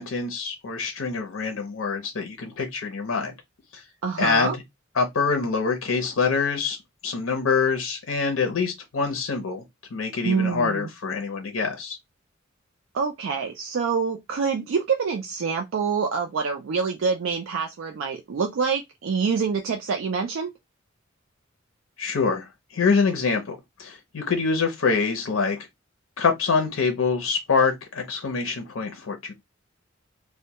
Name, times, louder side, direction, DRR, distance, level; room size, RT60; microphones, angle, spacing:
voice 1, 0.0-3.3 3.7-3.8 4.2-4.6 5.0-6.8 7.0-9.6 9.9-12.0 22.0-25.6 26.2-29.3, left 5 dB, 80° left, 0.6 m, -25 dB
voice 2, 4.0-4.6 10.2-10.9 12.9-20.5, right 5 dB, 75° right, 0.4 m, -26 dB
2.1 x 2.1 x 2.8 m
head